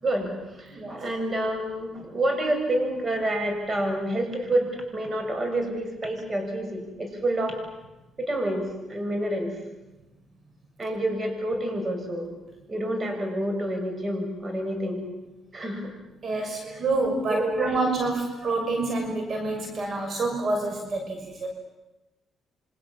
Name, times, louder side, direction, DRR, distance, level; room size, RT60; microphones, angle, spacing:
voice 1, 0.0-7.5 8.2-9.5 10.8-12.3 12.7-15.0 15.5-15.9 16.6-16.8 17.3-17.8, right 1 dB, 30° right, 5 dB, 7.0 m, -28 dB
voice 2, 16.2-21.5, right 2 dB, 50° right, 3 dB, 6.3 m, -27 dB
28.0 x 26.0 x 7.4 m, 1.0 s
cardioid pair, 90°, 0 cm